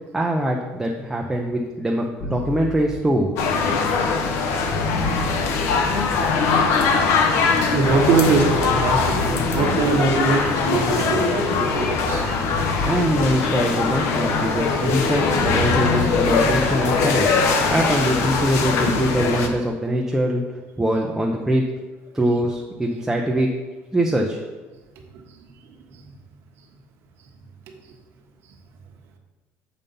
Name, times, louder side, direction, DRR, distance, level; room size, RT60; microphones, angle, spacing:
voice 1, 0.1-3.3 12.8-20.4 20.8-21.7 22.1-23.6 23.9-24.4, right 1 dB, 5° right, 0 dB, 0.6 m, -23 dB
sound 1, 2.2-7.3 7.8-10.5 11.0-13.8 14.1-16.8, left 4 dB, 35° left, 1.1 m, -31 dB
sound 2, 3.4-19.5, left 4 dB, 65° left, 1.0 m, -21 dB
voice 2, 7.5-12.5, right 4 dB, 55° right, 2 dB, 1.2 m, -22 dB
7.1 x 5.5 x 5.4 m, 1.2 s
cardioid pair, 160°, 5 cm